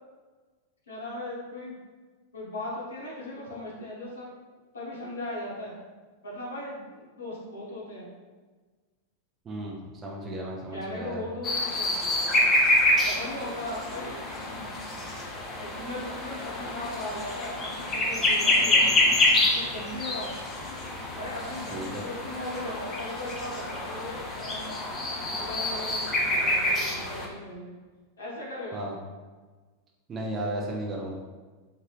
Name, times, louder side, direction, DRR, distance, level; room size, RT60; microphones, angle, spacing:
voice 1, 0.9-1.7 2.3-4.3 4.7-5.7 6.2-8.1 10.7-12.0 13.0-14.2 15.6-18.9 19.5-20.3 21.1-27.8 28.2-29.0, left 1 dB, 70° left, -6 dB, 0.7 m, -38 dB
voice 2, 9.4-11.2 21.7-22.0 28.7-28.9 30.1-31.1, right 1 dB, 25° right, -2 dB, 0.5 m, -34 dB
sound 1, 11.4-27.3, left 1 dB, 20° left, 0.6 m, -27 dB
2.6 x 2.5 x 3.1 m, 1.4 s
figure-of-eight pair, 90°, 0 cm